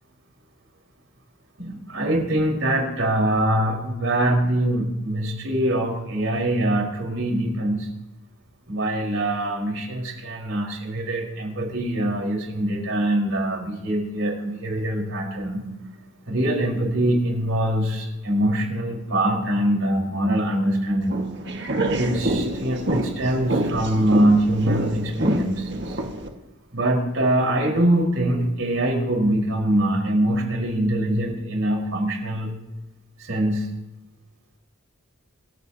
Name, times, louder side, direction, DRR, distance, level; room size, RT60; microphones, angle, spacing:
voice 1, 1.6-7.9 8.7-15.6 16.3-21.2 21.9-26.0 26.7-32.5 33.2-33.7, right 1 dB, 75° right, 0 dB, 4.7 m, -23 dB
sound 1, 21.0-26.3, right 1 dB, 55° right, 1.8 m, -26 dB
27.5 x 15.0 x 2.9 m, 1.0 s
head